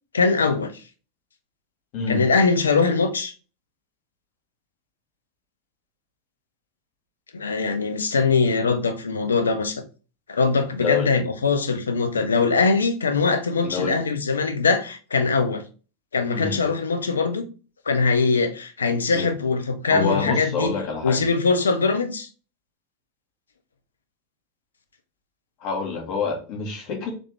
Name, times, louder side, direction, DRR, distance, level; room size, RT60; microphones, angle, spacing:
voice 1, 0.1-0.7 2.1-3.3 7.3-9.8 10.3-15.6 16.1-17.5 17.9-20.7 21.0-22.3, left 4 dB, 80° left, 0.6 m, -22 dB
voice 2, 1.9-2.2 10.8-11.1 13.6-14.0 16.3-16.6 19.1-19.3 19.9-21.2 25.6-27.1, left 5 dB, 50° left, 1.7 m, -27 dB
3.9 x 3.3 x 3.3 m
figure-of-eight pair, 85°, 0 cm